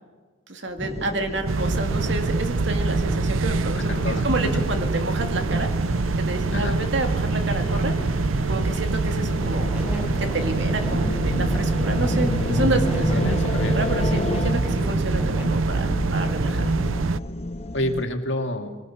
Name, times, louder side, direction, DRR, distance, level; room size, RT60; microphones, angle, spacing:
voice 1, 0.5-5.7 6.2-8.1 8.5-9.7 10.2-13.4 13.7-16.7, right 2 dB, 60° right, 5 dB, 2.3 m, -29 dB
sound 1, 0.7-16.9, equal, 10° right, 6.9 m, -34 dB
sound 2, 0.8-18.0, left 1 dB, 30° left, 0.9 m, -32 dB
sound 3, 1.5-17.2, right 3 dB, 90° right, 0.6 m, -25 dB
voice 2, 3.8-4.3 4.5-4.7 6.5-6.8 13.1-13.8 17.7-18.8, left 1 dB, 65° left, 4 dB, 2.3 m, -28 dB
23.0 x 18.5 x 7.2 m, 1.3 s
head